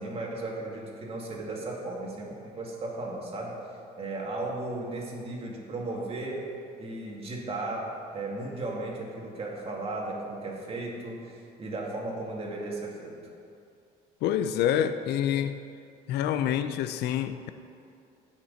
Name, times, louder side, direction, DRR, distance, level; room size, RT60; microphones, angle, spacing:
voice 1, 0.0-3.6 4.0-6.5 6.8-13.2, right 2 dB, 35° right, -2 dB, 2.2 m, -35 dB
voice 2, 14.2-15.6 16.1-17.5, left 10 dB, 80° left, 11 dB, 0.5 m, -27 dB
15.5 x 6.1 x 4.1 m, 2.5 s
cardioid pair, 110°, 17 cm